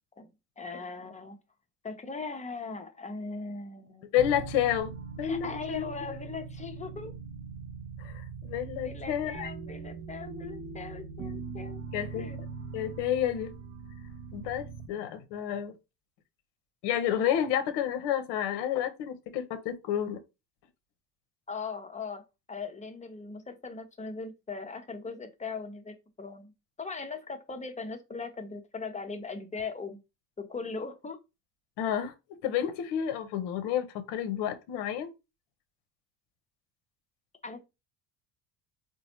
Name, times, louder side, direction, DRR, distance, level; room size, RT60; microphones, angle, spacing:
voice 1, 0.6-1.4 1.8-4.1 5.2-7.1 8.8-11.8 12.1-12.4 21.5-26.5 26.8-30.0 30.4-31.2 37.4-37.6, left 4 dB, 15° left, 0.6 m, -39 dB
voice 2, 4.1-5.8 8.0-9.5 11.9-12.3 12.7-13.5 14.3-15.7 16.8-20.2 31.8-32.1 32.4-35.1, left 10 dB, 60° left, 0.7 m, -30 dB
sound 1, 4.2-14.9, right 5 dB, 35° right, 0.6 m, -41 dB
3.9 x 2.2 x 2.8 m
hypercardioid pair, 65°, 48 cm